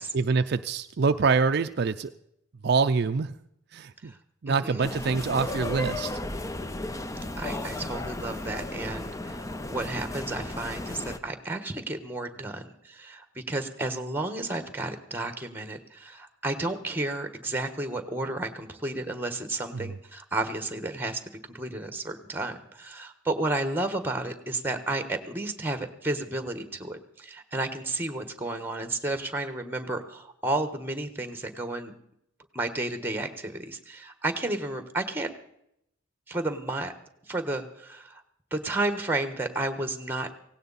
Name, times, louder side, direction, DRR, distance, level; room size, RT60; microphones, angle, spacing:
voice 1, 0.1-2.1 2.6-3.3 3.7-4.1 4.4-6.2 19.7-20.0, right 4 dB, 55° right, 8 dB, 0.5 m, -25 dB
voice 2, 4.5-4.9 7.4-31.9 32.5-35.3 36.3-36.9 37.3-38.2 38.5-40.4, right 2 dB, 10° right, 9 dB, 1.3 m, -32 dB
sound 1, 4.8-11.2, left 2 dB, 15° left, 0.6 m, -34 dB
17.0 x 17.0 x 4.1 m, 0.76 s
head